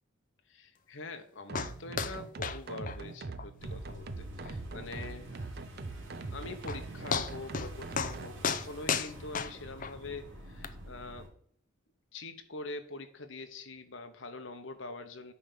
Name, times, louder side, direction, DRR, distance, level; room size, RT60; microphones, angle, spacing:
voice 1, 0.5-5.5 6.3-11.3 12.1-15.3, left 3 dB, 75° left, 7 dB, 1.0 m, -44 dB
sound 1, 1.5-1.7 2.0-2.2 2.4-2.6 2.9-3.0 3.4-3.5 3.9-4.0 4.4-4.5 6.2-6.3 6.7-6.8 7.1-7.7 8.0-8.2 8.4-9.9 10.6-10.7, left 6 dB, 45° left, 0.5 m, -33 dB
sound 2, 1.5-8.3, right 3 dB, 55° right, 0.6 m, -41 dB
sound 3, 3.6-11.3, equal, 85° right, 2.2 m, -48 dB
9.6 x 3.4 x 6.8 m, 0.62 s
head